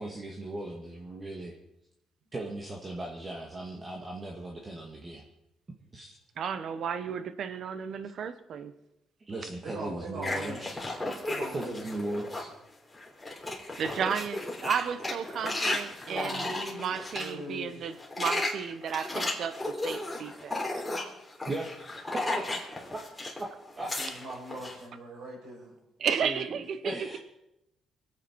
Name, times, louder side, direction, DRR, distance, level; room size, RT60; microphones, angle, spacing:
voice 1, 0.0-1.5 2.3-5.2 5.9-6.2 9.3-10.8 11.5-12.5 21.5-21.8 22.1-22.2 22.5-22.6 23.4-23.5 23.8-23.9 26.2-26.5 26.8-27.2, right 2 dB, 30° right, -1 dB, 2.0 m, -37 dB
voice 2, 6.4-8.7 13.8-16.5 16.7-19.6 19.8-20.6 26.0-27.2, right 7 dB, 65° right, 12 dB, 1.0 m, -33 dB
voice 3, 9.6-10.7 11.2-11.8 16.0-17.9 23.9-25.7, right 1 dB, 80° right, -3 dB, 6.4 m, -41 dB
sound 1, 10.2-12.5 12.9-17.3 17.9-23.4 23.7-24.8, left 2 dB, 15° left, 3.3 m, -34 dB
24.5 x 8.9 x 4.7 m, 0.88 s
cardioid pair, 90°, 0 cm